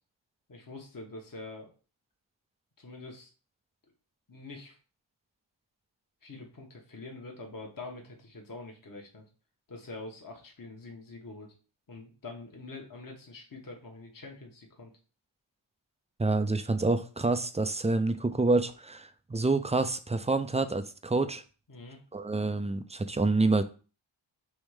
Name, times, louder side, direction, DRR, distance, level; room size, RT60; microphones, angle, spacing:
voice 1, 0.5-1.7 2.8-3.3 4.3-4.8 6.2-9.2 9.7-11.5 11.9-14.9 21.7-22.0, left 3 dB, 45° left, 1 dB, 1.0 m, -45 dB
voice 2, 16.2-21.4 22.1-23.6, right 3 dB, 15° right, 10 dB, 0.3 m, -27 dB
3.5 x 3.1 x 4.7 m, 0.37 s
wide cardioid pair, 80°, 48 cm